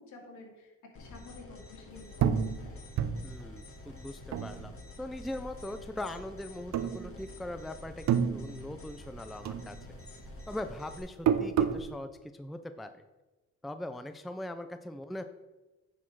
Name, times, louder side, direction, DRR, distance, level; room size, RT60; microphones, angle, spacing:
voice 1, 0.0-2.8, left 3 dB, 70° left, -1 dB, 2.5 m, -51 dB
sound 1, 0.9-11.0, left 2 dB, 45° left, 2.3 m, -49 dB
sound 2, 2.2-5.1 5.4-6.2 6.7-7.6 7.9-9.2 9.5-11.9, right 8 dB, 65° right, 0.7 m, -30 dB
voice 2, 3.2-10.0 10.5-13.0 13.6-15.2, left 1 dB, ahead, 9 dB, 0.4 m, -41 dB
9.9 x 4.3 x 4.7 m, 1.1 s
cardioid pair, 90°, 30 cm